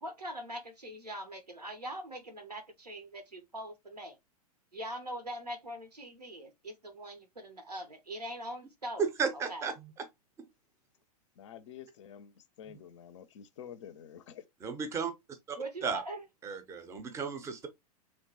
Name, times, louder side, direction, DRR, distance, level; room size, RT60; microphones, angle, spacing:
voice 1, 0.0-4.2 4.7-9.0 9.5-9.7 15.6-16.2, right 1 dB, 90° right, 0.7 m, -42 dB
voice 2, 9.0-9.7 10.4-10.5 14.6-15.1 15.5-15.6 15.8-16.0 16.4-17.7, right 5 dB, 15° right, 0.5 m, -33 dB
voice 3, 11.4-14.4, left 9 dB, 50° left, 0.4 m, -49 dB
2.9 x 2.1 x 2.7 m
figure-of-eight pair, 100°, 20 cm